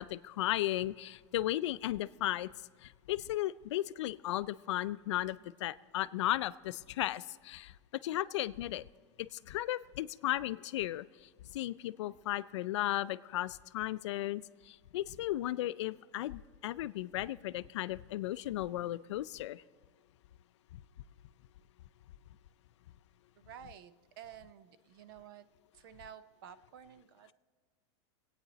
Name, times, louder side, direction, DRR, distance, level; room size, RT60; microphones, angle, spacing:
voice 1, 0.0-2.5 2.8-7.7 8.0-8.8 9.2-11.0 11.5-19.6, left 15 dB, 80° left, 16 dB, 0.4 m, -35 dB
voice 2, 23.4-25.5 25.7-27.3, right 9 dB, 50° right, 13 dB, 0.6 m, -52 dB
25.5 x 8.9 x 4.0 m, 1.6 s
supercardioid pair, 180°, 15 cm